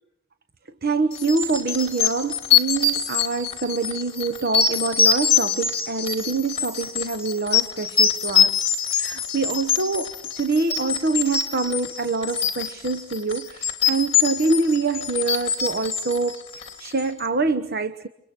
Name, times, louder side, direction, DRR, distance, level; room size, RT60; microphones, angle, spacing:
voice 1, 0.8-8.6 8.9-18.1, right 3 dB, 45° right, 1.0 m, -25 dB
sound 1, 1.2-17.0, left 7 dB, 25° left, 3.3 m, -24 dB
29.5 x 26.5 x 6.0 m
head